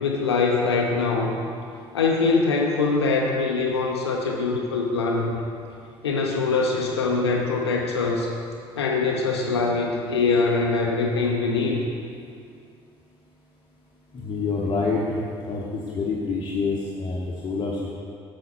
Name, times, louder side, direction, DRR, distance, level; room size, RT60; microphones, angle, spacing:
voice 1, 0.0-1.4 1.9-5.4 6.0-8.3 8.8-11.8, left 4 dB, 80° left, 0 dB, 0.5 m, -23 dB
voice 2, 14.1-15.2 15.5-17.9, left 4 dB, 35° left, -4 dB, 0.9 m, -27 dB
7.8 x 5.6 x 4.2 m, 2.4 s
figure-of-eight pair, 55°, 14 cm